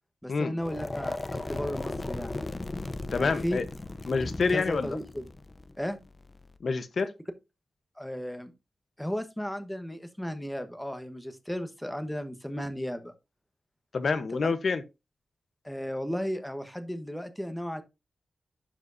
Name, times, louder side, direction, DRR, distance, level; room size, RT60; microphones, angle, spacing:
voice 1, 0.2-2.4 3.1-3.6 4.5-5.2 5.8-6.0 8.0-8.5 9.0-13.1 14.3-14.5 15.6-17.8, equal, 5° left, 1.2 m, -34 dB
sound 1, 0.6-6.6, left 2 dB, 30° left, 0.7 m, -36 dB
voice 2, 3.1-3.6 4.1-5.0 6.6-7.1 13.9-14.8, left 4 dB, 65° left, 1.0 m, -27 dB
11.5 x 4.9 x 2.7 m
cardioid pair, 70°, 0 cm